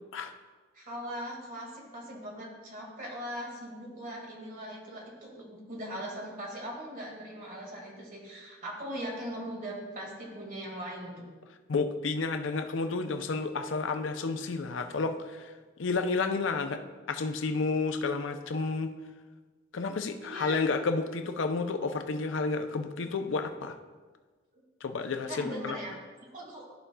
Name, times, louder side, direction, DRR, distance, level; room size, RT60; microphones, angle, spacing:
voice 1, 0.7-11.3 20.2-20.6 25.3-26.0 26.3-26.7, equal, 45° right, -2 dB, 1.9 m, -40 dB
voice 2, 11.7-15.5 15.8-16.8 17.1-18.9 19.7-23.8 24.8-25.8, left 4 dB, 70° left, 7 dB, 0.5 m, -31 dB
13.5 x 4.9 x 2.3 m, 1.4 s
head